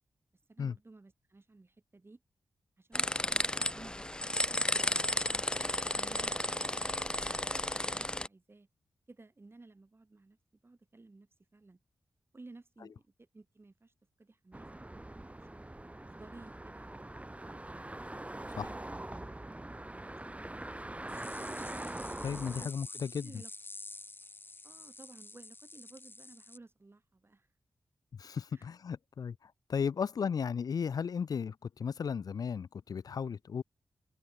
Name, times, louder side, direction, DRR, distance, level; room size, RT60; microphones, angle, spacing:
voice 1, 0.5-2.2 2.8-5.5 5.9-8.7 9.1-11.8 12.3-15.6 16.0-17.5 19.9-21.3 22.3-22.7 23.1-23.5 24.6-27.5 28.5-28.7, right 3 dB, 35° right, 6.1 m, -56 dB
sound 1, 2.9-8.3, left 1 dB, 15° left, 0.8 m, -33 dB
sound 2, 14.5-22.6, right 1 dB, 20° right, 5.7 m, -43 dB
sound 3, 21.1-26.6, left 2 dB, 35° left, 1.7 m, -49 dB
voice 2, 22.2-23.3 28.2-33.6, left 6 dB, 70° left, 0.8 m, -35 dB
supercardioid pair, 40°, 7 cm